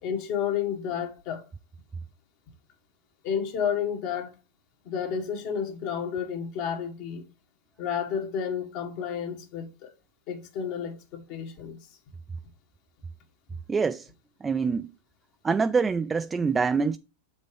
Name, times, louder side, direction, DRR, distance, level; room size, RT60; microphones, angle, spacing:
voice 1, 0.0-1.4 3.2-4.4 4.8-7.3 7.8-9.9 10.3-12.0, left 7 dB, 55° left, 1.5 m, -31 dB
voice 2, 13.7-14.1 14.4-14.9 15.4-17.0, right 5 dB, 15° right, 0.3 m, -25 dB
6.8 x 5.3 x 3.3 m
hypercardioid pair, 105°, 0 cm